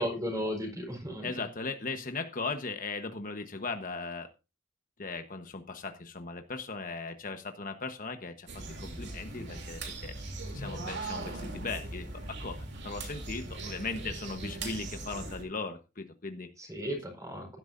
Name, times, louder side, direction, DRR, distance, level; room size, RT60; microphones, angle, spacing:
voice 1, 0.0-1.3 16.6-17.6, equal, 15° right, 3 dB, 4.6 m, -35 dB
voice 2, 1.2-4.3 5.0-8.5 8.8-10.1 10.5-16.5, left 4 dB, 40° left, 6 dB, 1.1 m, -38 dB
sound 1, 8.5-15.4, right 2 dB, 55° right, 3.0 m, -40 dB
16.0 x 12.0 x 2.6 m, 0.29 s
head